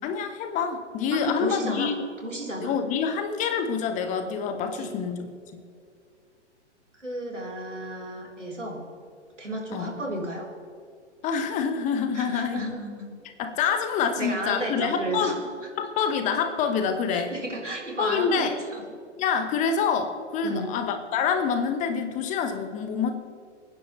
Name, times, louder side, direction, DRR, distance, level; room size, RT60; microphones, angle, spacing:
voice 1, 0.0-2.1 2.6-5.6 9.7-9.9 11.2-12.6 13.4-15.4 15.8-17.3 18.0-18.6 19.2-23.1, left 6 dB, 20° left, 8 dB, 1.0 m, -27 dB
voice 2, 1.1-1.9 2.2-2.7 4.7-4.9 7.0-8.8 9.4-10.5 12.1-13.1 14.1-15.3 17.1-18.8 20.4-20.7, right 1 dB, 90° right, -2 dB, 4.1 m, -33 dB
28.5 x 10.0 x 3.2 m, 2.3 s
figure-of-eight pair, 115°, 35 cm